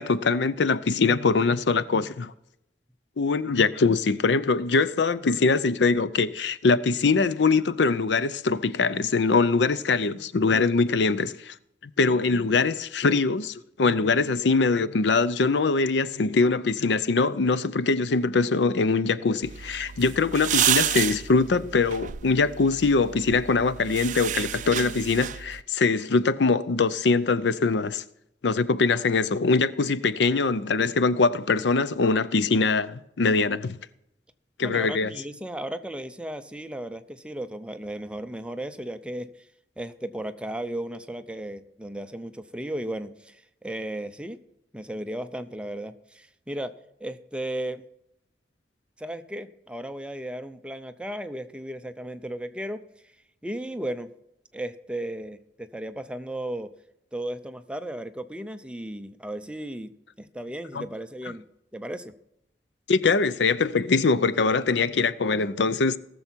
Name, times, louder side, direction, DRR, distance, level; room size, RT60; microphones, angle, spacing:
voice 1, 0.0-2.3 3.2-11.5 12.0-28.0 28.4-33.8 34.6-35.1 60.7-60.8 62.9-66.0, left 4 dB, 80° left, 0.6 m, -23 dB
sound 1, 19.4-25.6, right 11 dB, 45° right, 0.4 m, -30 dB
voice 2, 34.6-39.3 39.8-44.4 44.7-46.7 47.0-47.8 49.0-52.8 53.4-54.1 54.5-56.7 57.1-59.9 60.2-61.4 61.7-62.1, right 1 dB, 5° right, 0.6 m, -35 dB
18.0 x 7.0 x 4.5 m
head